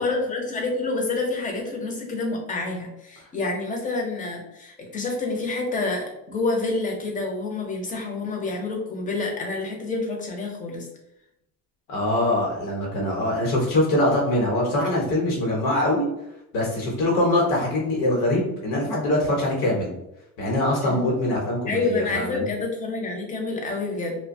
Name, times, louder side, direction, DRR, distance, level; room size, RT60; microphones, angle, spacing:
voice 1, 0.0-10.9 20.8-21.0 21.7-24.2, left 3 dB, 20° left, 1 dB, 0.4 m, -28 dB
voice 2, 11.9-16.1 16.5-19.9 20.4-22.5, left 1 dB, 80° left, -2 dB, 1.0 m, -23 dB
2.6 x 2.2 x 2.5 m, 0.84 s
cardioid pair, 160°, 38 cm